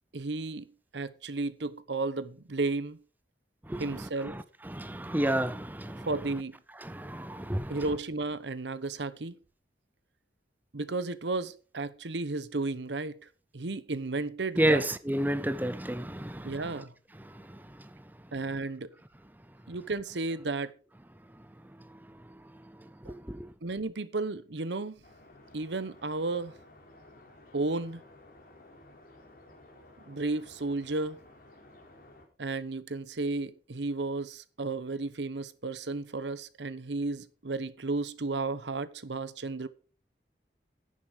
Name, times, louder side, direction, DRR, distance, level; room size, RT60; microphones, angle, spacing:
voice 1, 0.1-0.7 0.9-3.0 3.8-4.4 6.0-6.6 7.7-9.4 10.7-13.2 13.5-14.8 16.4-16.9 18.3-18.9 19.7-20.7 23.1-23.2 23.6-25.0 25.5-26.5 27.5-28.0 30.1-31.2 32.4-39.7, right 3 dB, 85° right, 0.9 m, -33 dB
voice 2, 3.6-6.4 6.8-7.9 14.6-16.8 17.1-18.1 21.3-23.5, right 1 dB, 10° right, 0.6 m, -32 dB
sound 1, 25.0-32.3, left 1 dB, 55° left, 3.8 m, -55 dB
10.5 x 10.0 x 4.9 m
head